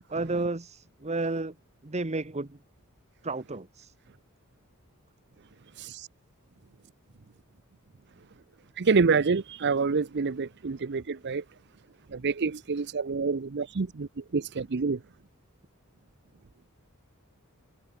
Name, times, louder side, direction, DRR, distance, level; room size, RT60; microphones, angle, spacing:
voice 1, 0.1-1.5 1.8-2.6 3.2-3.9, right 2 dB, 30° right, 1.2 m, -32 dB
voice 2, 8.8-11.4 12.1-15.0, right 4 dB, 55° right, 0.6 m, -27 dB
head